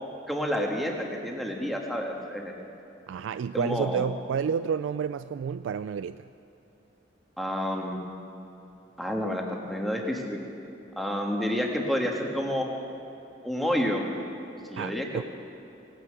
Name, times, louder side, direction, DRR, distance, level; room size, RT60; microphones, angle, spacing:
voice 1, 0.3-2.5 3.5-4.0 7.4-8.0 9.0-10.4 11.0-12.7 13.4-14.1 14.7-15.2, equal, ahead, 0 dB, 1.5 m, -29 dB
voice 2, 3.1-6.2 14.8-15.2, right 7 dB, 90° right, 13 dB, 0.3 m, -30 dB
17.5 x 9.6 x 7.8 m, 3.0 s
head